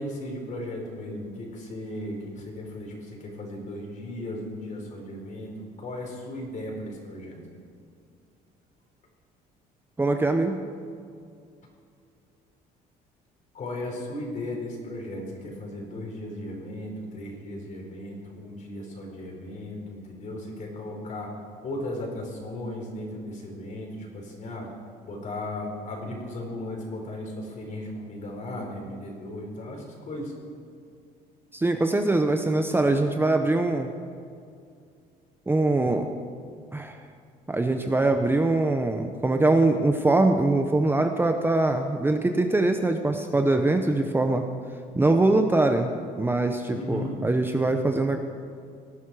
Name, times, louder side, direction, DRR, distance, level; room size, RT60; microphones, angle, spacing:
voice 1, 0.0-5.5 5.8-7.4 13.5-21.3 21.6-24.7 25.0-30.3 46.7-47.2, left 1 dB, 50° left, 0 dB, 4.5 m, -36 dB
voice 2, 10.0-10.6 31.5-33.9 35.5-36.1 36.7-37.0 37.5-44.4 44.9-45.9 46.2-48.2, right 2 dB, 15° right, 5 dB, 0.8 m, -23 dB
18.5 x 11.0 x 4.9 m, 2.3 s
cardioid pair, 110°, 17 cm